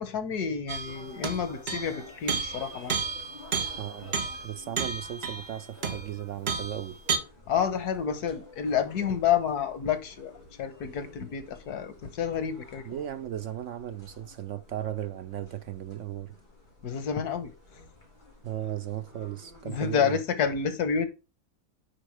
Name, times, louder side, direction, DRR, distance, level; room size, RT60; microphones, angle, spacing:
voice 1, 0.0-3.0 7.5-10.3 10.6-12.9 16.8-17.5 19.6-21.1, left 7 dB, 90° left, 1.7 m, -29 dB
sound 1, 0.7-2.0 2.3-6.2 6.5-7.2, right 5 dB, 45° right, 1.3 m, -32 dB
sound 2, 0.8-20.0, left 2 dB, 30° left, 3.2 m, -52 dB
voice 2, 3.8-4.2 4.4-7.0 12.9-16.3 18.4-20.2, right 11 dB, 65° right, 0.8 m, -36 dB
9.9 x 4.4 x 4.8 m
omnidirectional pair, 1.6 m